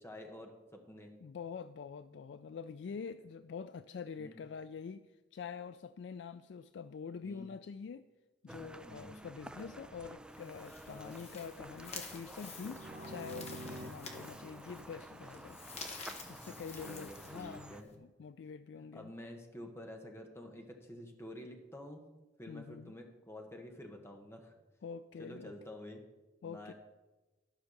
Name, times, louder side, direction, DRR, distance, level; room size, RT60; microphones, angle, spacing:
voice 1, 0.0-1.1 4.2-4.4 7.2-7.5 8.8-9.1 10.9-11.2 16.4-16.6 16.8-17.9 18.8-22.0 22.4-24.5 25.2-26.0 26.4-26.7, left 1 dB, 15° left, 3 dB, 1.2 m, -49 dB
voice 2, 1.2-8.0 8.4-15.6 16.3-19.1 22.5-22.9 24.8-25.5 26.4-26.7, left 6 dB, 80° left, 13 dB, 0.3 m, -46 dB
sound 1, 8.5-17.8, right 1 dB, 5° right, 0.4 m, -51 dB
sound 2, 10.2-18.0, left 4 dB, 40° left, 1.3 m, -50 dB
sound 3, 12.5-16.3, equal, 65° right, 0.7 m, -50 dB
12.5 x 5.7 x 6.5 m, 1.1 s
head